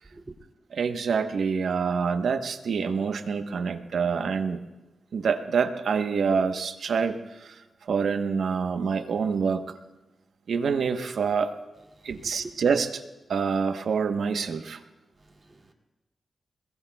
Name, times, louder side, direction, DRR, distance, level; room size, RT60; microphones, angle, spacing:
voice 1, 0.7-4.6 5.1-9.7 10.5-11.5 12.0-13.0 13.3-14.8, right 5 dB, 80° right, 1.1 m, -26 dB
voice 2, 11.9-12.5 15.2-15.7, right 2 dB, 30° right, 2.5 m, -46 dB
26.0 x 22.0 x 2.3 m
wide cardioid pair, 100°, 0 cm